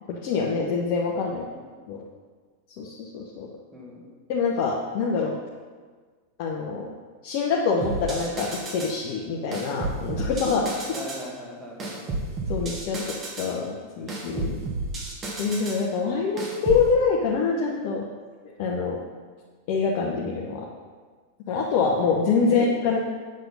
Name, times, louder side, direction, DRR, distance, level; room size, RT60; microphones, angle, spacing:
voice 1, 0.1-1.4 1.9-2.0 2.8-3.5 4.3-5.4 6.4-6.9 7.2-10.7 12.5-14.7 15.4-18.1 18.6-19.0 19.7-20.7 21.5-23.0, left 5 dB, 45° left, -2 dB, 1.0 m, -25 dB
voice 2, 1.3-1.7 3.7-4.1 10.9-12.0 22.3-22.8, equal, 5° right, -3 dB, 1.6 m, -39 dB
sound 1, 7.8-9.0 9.5-11.3 11.8-13.6 14.1-15.8 16.4-16.9, right 2 dB, 25° right, 1.7 m, -32 dB
8.0 x 6.4 x 5.3 m, 1.5 s
figure-of-eight pair, 90°, 0 cm